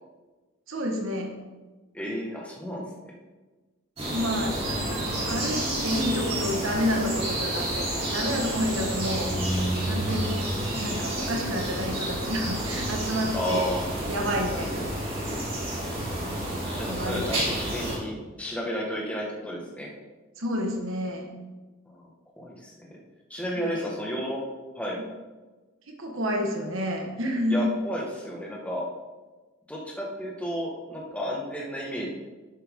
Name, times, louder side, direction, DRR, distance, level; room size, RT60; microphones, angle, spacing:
voice 1, 0.7-1.3 4.0-9.3 9.8-13.7 14.1-14.9 16.9-17.5 20.4-21.3 23.6-23.7 25.9-27.7, equal, 75° right, 1 dB, 1.6 m, -30 dB
voice 2, 1.9-2.8 13.3-13.9 14.5-14.9 16.7-19.9 21.9-22.1 22.4-22.9 23.3-24.4 24.7-25.0 27.5-28.8 29.7-32.1, equal, 5° left, -3 dB, 1.7 m, -32 dB
sound 1, 4.0-18.0, right 1 dB, 30° right, 3.1 m, -30 dB
11.0 x 8.2 x 3.8 m, 1.2 s
head